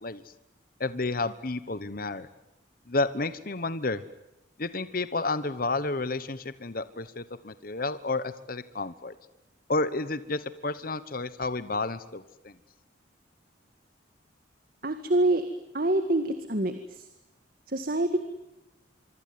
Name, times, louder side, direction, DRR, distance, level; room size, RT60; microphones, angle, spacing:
voice 1, 0.8-2.3 2.9-4.0 4.6-9.1 9.7-12.5, left 3 dB, 45° left, 14 dB, 1.1 m, -31 dB
voice 2, 14.8-15.4 15.7-17.1 17.7-18.2, right 1 dB, 50° right, 9 dB, 1.9 m, -26 dB
25.5 x 24.5 x 9.5 m, 0.92 s
head